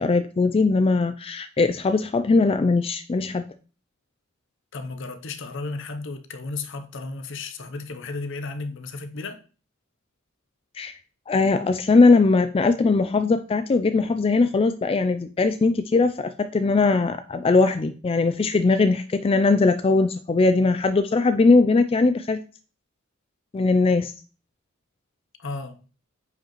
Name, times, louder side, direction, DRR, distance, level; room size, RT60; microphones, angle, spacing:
voice 1, 0.0-3.4 10.8-10.9 11.3-22.4 23.5-24.1, left 3 dB, 25° left, 0.3 m, -20 dB
voice 2, 4.7-9.4 25.4-25.8, left 3 dB, 60° left, 0.8 m, -34 dB
9.2 x 5.0 x 3.1 m
head